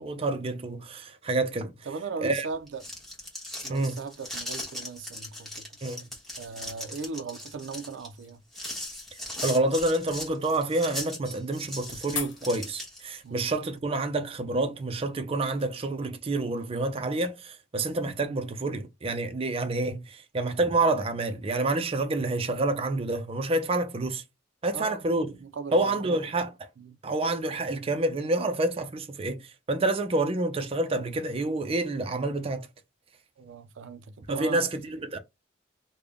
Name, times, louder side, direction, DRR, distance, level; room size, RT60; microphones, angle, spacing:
voice 1, 0.0-1.7 2.2-2.5 3.7-4.0 5.8-6.1 9.4-24.2 24.6-25.3 25.7-26.5 27.0-32.7 34.3-35.2, right 2 dB, 30° right, 0.5 m, -28 dB
voice 2, 1.9-2.8 3.6-5.7 6.4-8.4 13.2-13.4 24.7-25.0 25.4-26.1 26.8-27.0 33.4-34.6, right 4 dB, 85° right, 0.4 m, -38 dB
sound 1, 2.6-13.2, left 1 dB, ahead, 1.2 m, -39 dB
sound 2, 7.2-15.7, left 6 dB, 85° left, 0.9 m, -46 dB
3.4 x 2.2 x 3.5 m
head